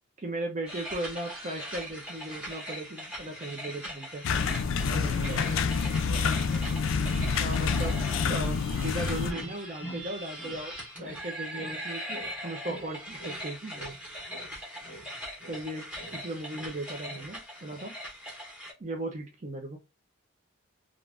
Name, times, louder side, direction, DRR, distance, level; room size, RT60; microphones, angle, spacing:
voice 1, 0.2-4.2 4.9-5.4 7.4-8.0 8.3-10.7 11.0-13.9 15.5-17.9 18.8-19.8, right 1 dB, 35° right, 0.5 m, -37 dB
sound 1, 0.6-18.7, equal, 5° right, 1.0 m, -41 dB
sound 2, 4.2-9.3, left 5 dB, 65° left, 0.3 m, -27 dB
voice 2, 4.8-6.9, right 1 dB, 70° right, 0.9 m, -43 dB
sound 3, 9.3-10.7 11.0-11.8 12.1-14.0 14.3-16.3 16.5-16.8 17.1-17.4, right 1 dB, 25° left, 1.1 m, -45 dB
2.4 x 2.4 x 3.3 m
head